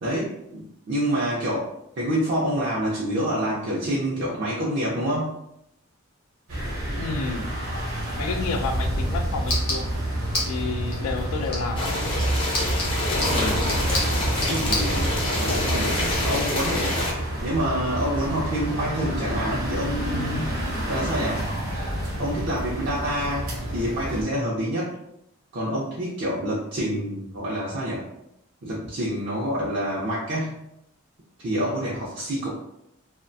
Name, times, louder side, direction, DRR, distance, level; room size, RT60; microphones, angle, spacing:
voice 1, 0.0-1.7 2.0-5.4 13.3-13.9 14.5-17.0 17.4-20.5 20.9-21.4 22.2-24.9 25.5-28.0 28.6-30.6 31.4-32.5, equal, 50° right, -6 dB, 0.4 m, -27 dB
sound 1, 6.5-24.2, right 1 dB, 70° right, 0.8 m, -28 dB
voice 2, 6.9-7.5 8.2-9.9 10.5-11.9, left 4 dB, 80° left, 5 dB, 0.3 m, -30 dB
sound 2, 8.7-15.3, left 2 dB, 45° left, 0.8 m, -33 dB
sound 3, 11.8-17.1, left 1 dB, 25° left, 0.5 m, -27 dB
2.3 x 2.1 x 2.5 m, 0.78 s
head